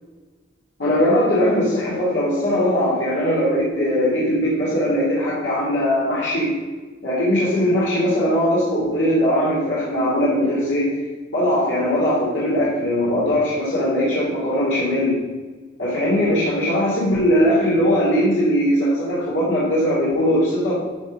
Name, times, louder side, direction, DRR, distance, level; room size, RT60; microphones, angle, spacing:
voice 1, 0.8-6.5 7.0-11.0 11.3-15.2 15.8-20.8, equal, 70° left, -7 dB, 2.9 m, -20 dB
11.5 x 4.7 x 5.2 m, 1.3 s
head